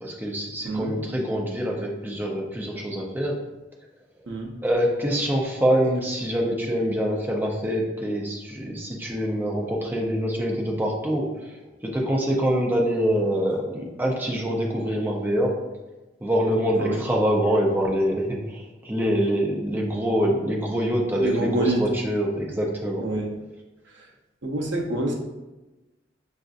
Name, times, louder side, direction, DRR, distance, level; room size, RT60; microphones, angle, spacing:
voice 1, 0.0-3.4 4.6-11.6 11.8-15.6 16.2-23.1, equal, 10° right, -2 dB, 0.6 m, -25 dB
voice 2, 0.6-0.9 4.3-4.5 16.8-17.0 21.2-21.8 23.0-23.3 24.4-25.1, right 2 dB, 70° right, 0 dB, 0.7 m, -26 dB
5.7 x 2.6 x 2.5 m, 1.1 s
head